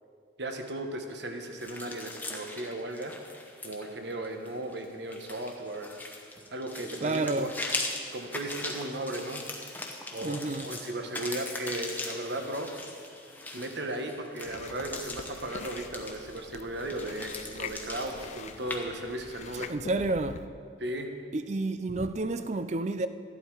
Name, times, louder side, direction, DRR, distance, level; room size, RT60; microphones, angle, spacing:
voice 1, 0.4-3.1 3.6-5.9 6.5-7.5 8.1-9.4 10.1-12.7 13.5-19.7 20.8-21.1, right 1 dB, 65° right, 1.2 m, -36 dB
sound 1, 1.6-18.8, left 2 dB, 10° left, 1.0 m, -40 dB
voice 2, 7.0-7.5 10.2-10.7 19.7-20.5 21.3-23.1, right 2 dB, 35° right, 0.5 m, -30 dB
Chewing mastication, 14.4-20.5, left 5 dB, 35° left, 0.4 m, -44 dB
13.5 x 11.0 x 4.7 m
head